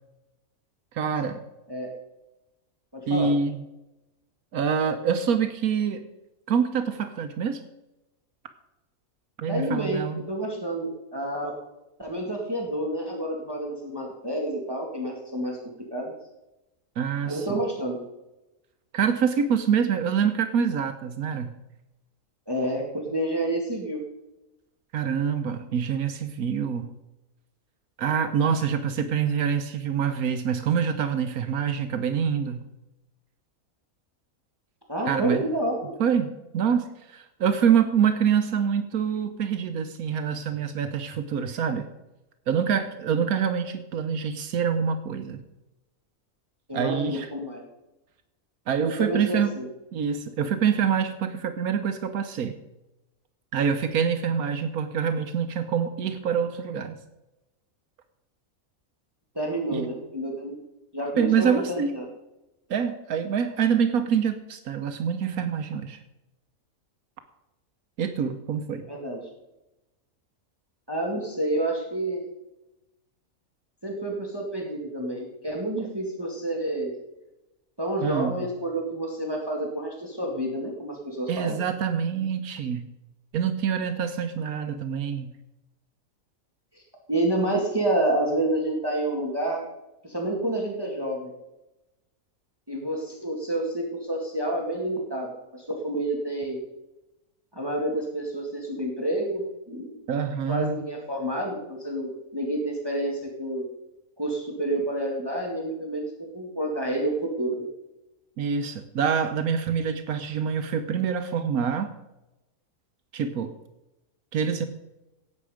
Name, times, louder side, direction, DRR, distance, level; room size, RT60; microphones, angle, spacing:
voice 1, 0.9-1.4 3.1-3.6 4.5-6.0 6.5-7.6 9.4-10.2 17.0-17.6 18.9-21.6 24.9-26.9 28.0-32.6 35.1-35.5 36.0-41.9 42.5-45.4 46.7-47.3 48.7-49.6 49.9-52.5 53.5-57.0 59.7-59.9 61.2-62.0 62.7-66.0 68.0-68.9 78.0-78.5 81.3-82.9 83.3-85.3 100.1-100.8 108.4-111.9 113.1-113.5 114.3-114.6, right 7 dB, 85° right, 7 dB, 1.4 m, -26 dB
voice 2, 2.9-3.3 9.5-11.6 12.0-15.6 15.9-16.1 17.3-18.0 22.5-24.0 34.9-35.9 46.7-47.6 48.8-49.7 59.4-60.6 60.9-62.1 68.8-69.2 70.9-72.2 73.8-76.9 77.8-81.6 87.1-89.6 90.0-91.3 92.7-96.6 97.5-99.9 100.5-103.6 104.2-106.1 106.3-107.7, right 1 dB, 15° right, 0 dB, 2.0 m, -29 dB
16.5 x 8.7 x 5.0 m, 0.96 s
omnidirectional pair, 1.5 m